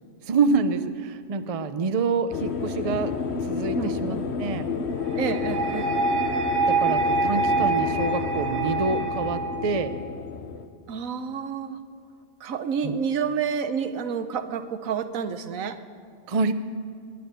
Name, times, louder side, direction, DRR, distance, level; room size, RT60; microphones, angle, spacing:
voice 1, 0.2-3.1 3.5-4.7 6.7-9.9 12.8-13.0 16.3-16.5, right 4 dB, 35° right, 11 dB, 0.6 m, -26 dB
sound 1, 2.3-10.7, left 5 dB, 60° left, 1.1 m, -30 dB
voice 2, 3.7-4.2 5.1-5.9 10.9-11.8 12.4-15.8, right 6 dB, 85° right, 10 dB, 1.3 m, -29 dB
sound 2, 5.0-10.0, right 3 dB, 60° right, 1.7 m, -26 dB
21.5 x 9.6 x 6.8 m, 2.3 s
omnidirectional pair, 1.4 m